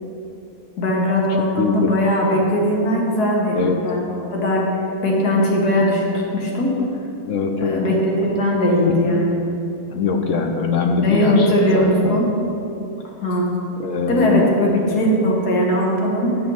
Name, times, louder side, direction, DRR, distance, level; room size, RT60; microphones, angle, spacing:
voice 1, 0.8-4.0 4.3-6.1 6.3-6.8 7.6-9.4 11.0-12.3 13.2-13.5 14.1-16.4, equal, 80° left, -2 dB, 2.0 m, -19 dB
voice 2, 1.6-2.0 3.5-3.8 7.2-7.8 8.9-9.0 9.9-12.2 13.8-14.5, left 4 dB, 65° left, 4 dB, 0.9 m, -22 dB
8.8 x 5.2 x 7.0 m, 2.9 s
omnidirectional pair, 1.6 m